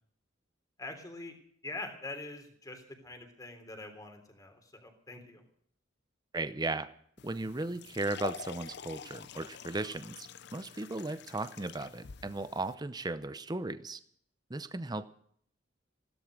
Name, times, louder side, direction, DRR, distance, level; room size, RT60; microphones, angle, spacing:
voice 1, 0.8-1.3 1.6-5.4, left 2 dB, 20° left, 5 dB, 3.5 m, -44 dB
voice 2, 6.3-6.9 7.2-10.3 10.5-14.0 14.5-15.1, right 2 dB, 20° right, 12 dB, 0.7 m, -36 dB
sound 1, 7.2-12.8, left 7 dB, 60° left, 0.6 m, -47 dB
16.0 x 13.5 x 6.5 m, 0.63 s
head